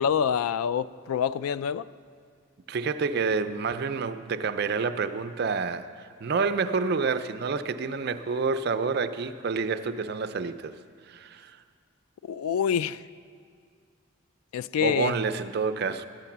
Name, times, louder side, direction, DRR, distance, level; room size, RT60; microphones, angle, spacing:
voice 1, 0.0-1.9 12.3-13.0 14.5-15.1, left 8 dB, 90° left, 17 dB, 0.3 m, -26 dB
voice 2, 2.7-10.7 11.1-11.6 14.8-16.0, right 5 dB, 50° right, 10 dB, 0.4 m, -28 dB
12.0 x 6.8 x 7.3 m, 2.1 s
head